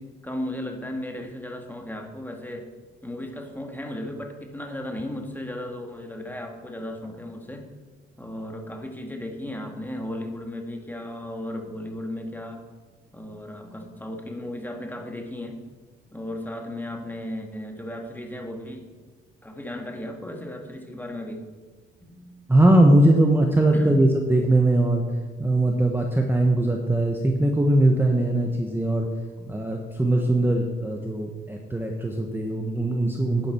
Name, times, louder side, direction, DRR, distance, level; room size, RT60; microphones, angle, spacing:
voice 1, 0.0-2.7 3.0-7.7 8.2-12.6 13.1-15.6 16.1-18.9 19.4-21.5 22.1-22.4 23.7-24.0 29.4-29.7, left 1 dB, 10° left, 3 dB, 1.9 m, -35 dB
voice 2, 22.5-25.0 25.4-29.1 29.5-33.5, right 1 dB, 10° right, 2 dB, 1.2 m, -20 dB
10.5 x 10.0 x 4.5 m, 1.3 s
cardioid pair, 90°, 20 cm